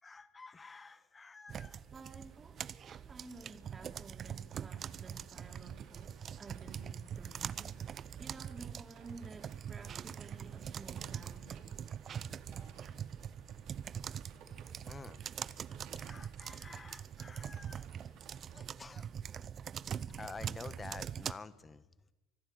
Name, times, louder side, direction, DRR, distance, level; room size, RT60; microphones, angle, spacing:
voice 1, 0.0-1.8 12.5-12.8 14.8-15.2 16.0-17.9 18.5-19.1 20.2-21.8, left 4 dB, 25° left, 1.5 m, -50 dB
sound 1, 1.5-21.3, right 8 dB, 45° right, 0.6 m, -43 dB
voice 2, 1.9-7.8 8.2-11.9, right 3 dB, 30° right, 3.9 m, -53 dB
sound 2, 4.5-18.7, right 7 dB, 60° right, 3.9 m, -61 dB
25.0 x 12.0 x 9.6 m
hypercardioid pair, 70°, 0 cm